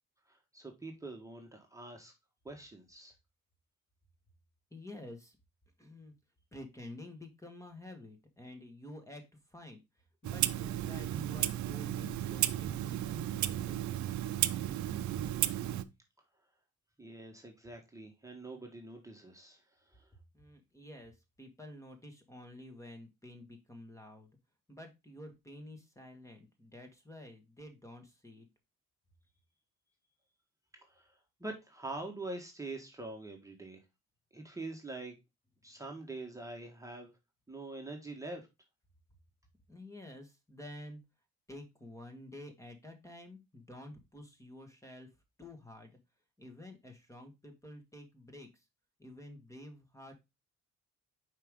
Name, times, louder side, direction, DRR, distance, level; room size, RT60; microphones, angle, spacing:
voice 1, 0.3-2.1 2.4-3.1 17.0-19.6 19.9-20.0 30.9-31.1 31.4-33.8 34.3-35.1 35.6-37.1 37.5-38.5, right 2 dB, 10° right, 1.5 m, -44 dB
voice 2, 4.7-5.4 5.8-6.1 6.5-13.8 20.3-24.3 24.7-28.5 39.7-41.0 41.5-45.1 45.4-46.0 46.4-48.7 49.0-50.2, left 1 dB, 10° left, 1.7 m, -50 dB
Clock, 10.2-15.8, right 12 dB, 70° right, 0.6 m, -34 dB
5.7 x 4.7 x 3.6 m
cardioid pair, 90°, 30 cm